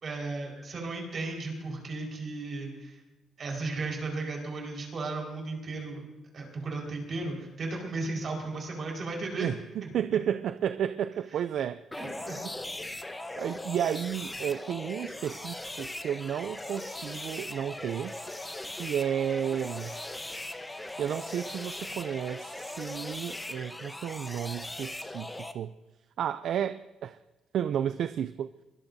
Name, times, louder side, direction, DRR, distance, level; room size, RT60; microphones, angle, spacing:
voice 1, 0.0-3.0 3.4-6.0 6.3-9.5 9.8-9.9 12.0-12.4, right 3 dB, 50° right, 4.8 m, -35 dB
voice 2, 9.4-11.8 12.4-12.6 13.3-18.2 18.7-19.9 21.0-25.7 26.2-27.2 27.5-28.5, right 9 dB, 70° right, 0.4 m, -32 dB
sound 1, 11.9-25.5, left 1 dB, 10° left, 0.9 m, -39 dB
23.0 x 17.5 x 2.7 m
cardioid pair, 90°, 0 cm